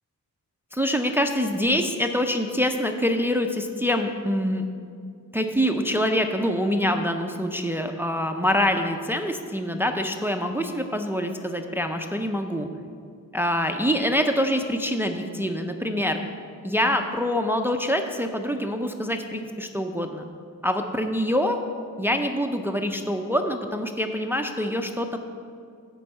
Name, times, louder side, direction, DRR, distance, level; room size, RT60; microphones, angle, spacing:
voice 1, 0.7-4.6 5.3-12.7 13.3-16.2 16.6-20.3 20.6-21.6 22.0-25.2, equal, 5° right, 5 dB, 0.5 m, -25 dB
11.5 x 4.6 x 7.9 m, 2.3 s
wide cardioid pair, 145°, 34 cm